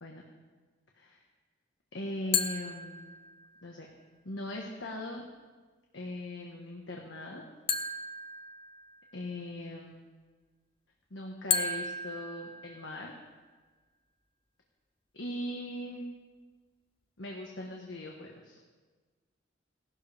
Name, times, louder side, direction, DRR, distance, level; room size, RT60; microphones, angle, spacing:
voice 1, 1.9-3.2 3.6-3.9 4.2-5.3 5.9-7.4 9.1-10.1 11.1-13.2 15.1-16.0 17.2-18.6, left 1 dB, 85° left, 0 dB, 1.5 m, -40 dB
sound 1, 2.3-3.6 7.7-9.2 11.5-13.2, left 4 dB, 30° left, 0.7 m, -34 dB
18.0 x 12.5 x 3.5 m, 1.4 s
head